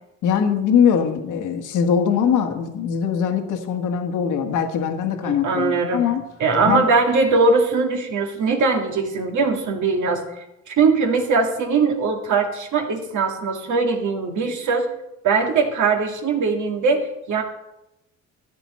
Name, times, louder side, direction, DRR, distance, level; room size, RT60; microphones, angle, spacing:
voice 1, 0.2-6.2 6.5-6.9, left 7 dB, 80° left, 5 dB, 1.5 m, -21 dB
voice 2, 5.2-6.0 6.4-10.2 10.7-14.9 15.2-17.4, right 4 dB, 75° right, 3 dB, 2.0 m, -20 dB
13.5 x 8.9 x 4.2 m, 0.93 s
cardioid pair, 90°, 30 cm